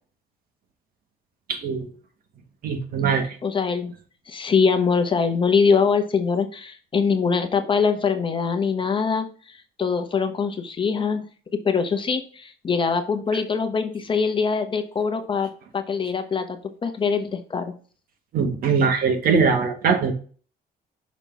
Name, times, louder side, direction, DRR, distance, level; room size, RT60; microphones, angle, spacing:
voice 1, 1.5-1.9 2.6-3.4 18.3-20.1, right 5 dB, 60° right, 5 dB, 1.7 m, -21 dB
voice 2, 3.4-3.9 4.3-11.2 11.6-17.7, left 5 dB, 30° left, 7 dB, 1.1 m, -23 dB
6.2 x 3.7 x 4.5 m, 0.39 s
cardioid pair, 110°, 17 cm